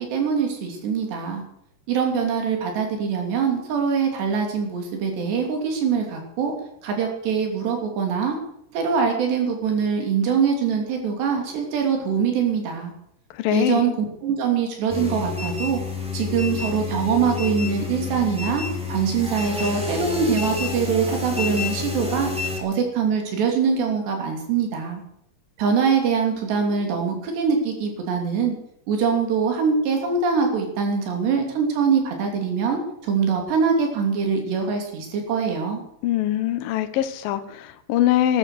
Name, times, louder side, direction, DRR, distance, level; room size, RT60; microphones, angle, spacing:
voice 1, 0.0-1.4 1.9-6.5 6.8-8.4 8.7-12.9 13.5-15.8 16.1-22.3 22.6-25.0 25.6-28.6 28.9-35.8, right 6 dB, 80° right, 3 dB, 5.2 m, -23 dB
voice 2, 13.4-13.9 36.0-38.4, left 12 dB, 70° left, 10 dB, 2.5 m, -23 dB
sound 1, 14.9-22.6, left 4 dB, ahead, 2.4 m, -29 dB
13.0 x 12.5 x 6.6 m, 0.73 s
omnidirectional pair, 4.8 m